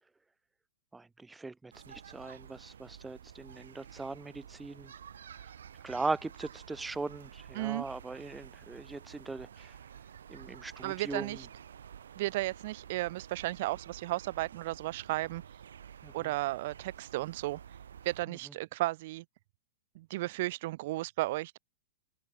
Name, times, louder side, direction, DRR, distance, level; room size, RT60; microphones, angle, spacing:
voice 1, 0.9-4.9 5.3-5.5 5.8-9.8 10.3-11.5 16.0-16.3 18.3-18.5, right 3 dB, 10° right, 0.7 m, -40 dB
sound 1, 1.7-18.2, right 8 dB, 85° right, 1.7 m, -51 dB
voice 2, 10.8-11.4 12.2-15.4 16.1-17.6 18.1-19.2 20.0-21.6, right 18 dB, 55° right, 0.5 m, -34 dB
hypercardioid pair, 125°, 0 cm